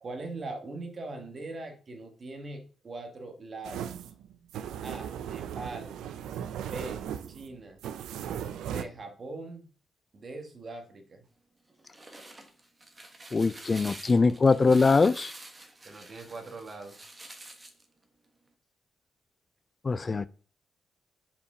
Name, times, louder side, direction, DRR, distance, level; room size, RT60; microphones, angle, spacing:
voice 1, 0.0-3.9 4.8-5.9 6.6-7.0 7.3-7.8 8.7-9.7 10.1-11.3 15.8-16.9, right 2 dB, 40° right, 1.6 m, -41 dB
sound 1, 3.6-8.8, right 9 dB, 90° right, 0.5 m, -37 dB
sound 2, 11.7-17.8, right 2 dB, 25° right, 1.4 m, -47 dB
voice 2, 13.3-15.3 19.8-20.3, left 4 dB, 35° left, 0.3 m, -22 dB
5.5 x 5.0 x 4.9 m
cardioid pair, 85°, 0 cm